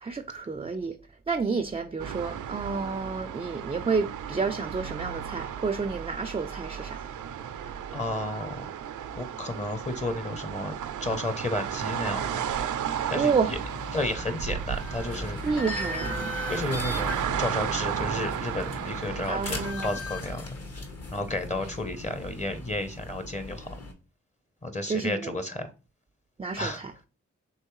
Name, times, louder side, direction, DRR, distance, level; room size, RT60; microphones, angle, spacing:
voice 1, 0.0-1.0 1.3-7.0 13.1-13.5 15.4-16.3 19.2-20.0 24.9-25.4 26.4-26.9, right 5 dB, 20° right, 0.4 m, -30 dB
sound 1, 2.0-19.7, right 9 dB, 75° right, 0.5 m, -34 dB
voice 2, 7.9-8.7 9.1-10.8 11.0-12.5 13.1-13.6 13.9-15.4 16.5-20.4 21.1-23.7 24.6-25.7 26.6-26.8, left 1 dB, 20° left, 0.7 m, -32 dB
sound 2, 13.3-23.9, left 1 dB, 50° left, 1.1 m, -38 dB
sound 3, 14.5-14.8 15.4-16.6 17.2-17.6 18.2-18.4 18.7-18.9 19.8-20.3, equal, 70° left, 1.3 m, -39 dB
4.4 x 3.2 x 3.0 m
cardioid pair, 40°, 31 cm